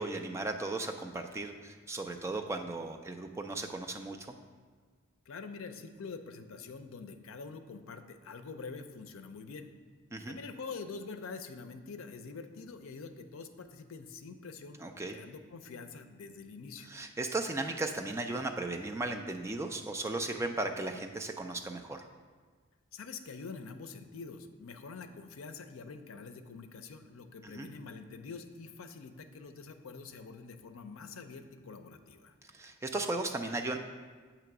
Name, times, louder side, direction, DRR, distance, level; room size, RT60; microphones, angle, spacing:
voice 1, 0.0-4.3 10.1-10.4 14.8-15.2 16.9-22.1 27.4-27.7 32.5-33.8, right 2 dB, 15° right, 4 dB, 0.3 m, -36 dB
voice 2, 5.3-9.7 10.3-14.8 15.1-16.9 22.9-32.4, left 4 dB, 80° left, 8 dB, 0.5 m, -45 dB
7.6 x 3.0 x 5.9 m, 1.5 s
head